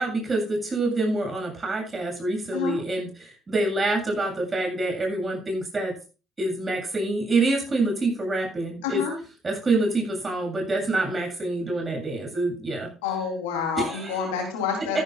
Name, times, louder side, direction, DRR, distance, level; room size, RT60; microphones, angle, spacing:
voice 1, 0.0-6.0 6.4-9.0 9.4-12.9 13.8-14.2, right 2 dB, 30° right, 1 dB, 7.9 m, -26 dB
voice 2, 8.8-9.1 13.0-15.0, left 6 dB, 75° left, 2 dB, 3.5 m, -28 dB
14.0 x 12.5 x 2.5 m, 0.33 s
hypercardioid pair, 55°, 0 cm